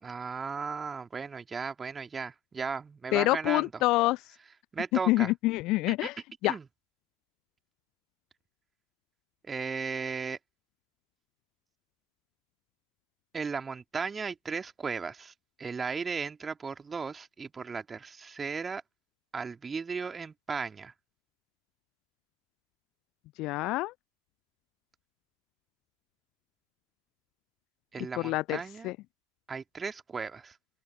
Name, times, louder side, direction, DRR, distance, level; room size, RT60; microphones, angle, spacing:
voice 1, 0.0-3.7 4.7-5.3 6.4-6.6 9.4-10.4 13.3-15.3 15.6-18.8 19.3-20.9 27.9-28.9 29.5-30.6, right 5 dB, 15° right, 2.8 m, -36 dB
voice 2, 3.1-4.4 5.1-6.6 23.4-23.9 28.0-29.0, left 19 dB, 40° left, 0.3 m, -27 dB
open air
figure-of-eight pair, 90°, 0 cm